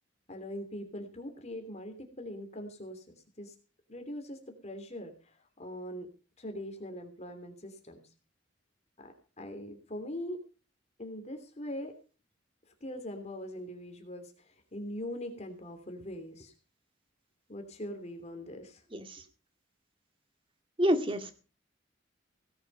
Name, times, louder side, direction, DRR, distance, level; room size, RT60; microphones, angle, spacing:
voice 1, 0.3-3.5 3.9-6.1 6.4-8.0 9.0-10.4 11.0-11.9 12.8-16.5 17.5-18.8, left 1 dB, 35° left, 5 dB, 3.1 m, -42 dB
voice 2, 20.8-21.4, equal, 30° right, 7 dB, 2.2 m, -27 dB
17.5 x 9.5 x 5.4 m, 0.36 s
head